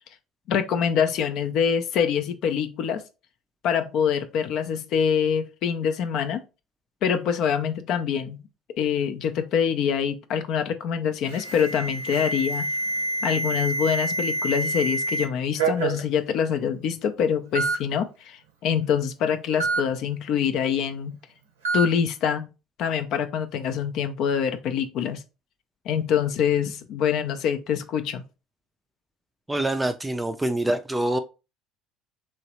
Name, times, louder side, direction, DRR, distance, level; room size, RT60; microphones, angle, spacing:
voice 1, 0.5-3.0 3.6-6.4 7.0-8.4 8.8-12.7 13.2-21.2 21.7-22.5 22.8-25.2 25.9-28.2, left 7 dB, 60° left, 0.4 m, -25 dB
Alarm, 11.3-15.3 15.6-16.0 16.8-16.9 17.6-17.8 19.6-19.8 21.6-21.9, right 2 dB, 85° right, 0.7 m, -27 dB
voice 2, 29.5-31.2, right 1 dB, 10° right, 0.3 m, -25 dB
3.0 x 2.8 x 2.9 m
hypercardioid pair, 60°, 0 cm